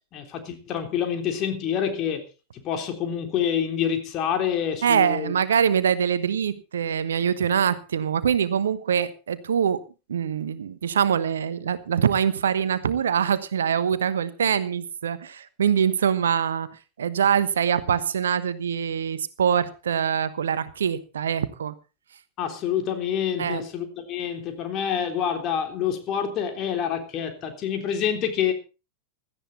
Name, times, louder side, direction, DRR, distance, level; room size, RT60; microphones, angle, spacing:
voice 1, 0.1-2.2 2.6-5.3 22.4-28.5, left 8 dB, 35° left, 5 dB, 3.6 m, -27 dB
voice 2, 4.8-9.8 10.1-16.7 17.0-21.7 23.4-23.6, right 8 dB, 65° right, 14 dB, 1.2 m, -24 dB
17.0 x 13.0 x 4.1 m, 0.32 s
figure-of-eight pair, 90°, 0 cm